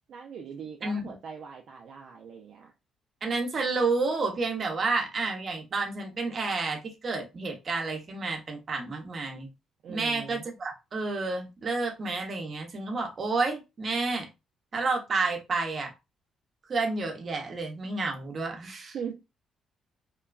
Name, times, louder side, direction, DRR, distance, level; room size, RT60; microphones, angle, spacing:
voice 1, 0.1-2.7 9.8-10.4 18.9-19.1, right 7 dB, 65° right, 0.5 m, -40 dB
voice 2, 0.8-1.2 3.2-9.5 9.9-14.3 14.7-15.9 16.7-19.1, right 3 dB, 45° right, 0.9 m, -30 dB
2.9 x 2.3 x 2.3 m
cardioid pair, 90°, 0 cm